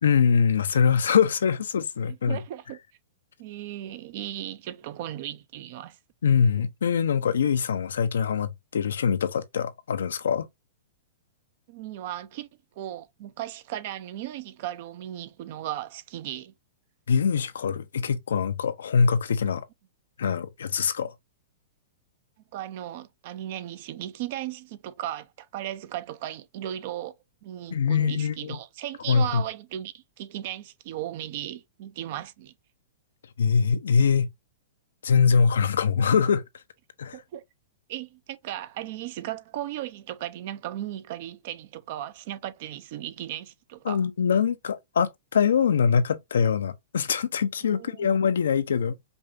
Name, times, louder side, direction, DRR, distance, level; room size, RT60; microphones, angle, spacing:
voice 1, 0.0-2.4 6.2-10.5 17.1-19.6 20.2-21.1 27.7-28.6 29.1-29.4 33.4-34.3 35.0-36.4 37.0-37.2 43.9-49.0, left 6 dB, 85° left, 0.6 m, -23 dB
voice 2, 2.1-2.8 3.4-6.0 11.7-12.5 12.8-16.5 22.5-27.2 27.4-32.5 37.1-37.4 37.9-44.1 47.7-48.2, right 12 dB, 50° right, 0.6 m, -36 dB
5.3 x 2.3 x 2.6 m
hypercardioid pair, 145°, 0 cm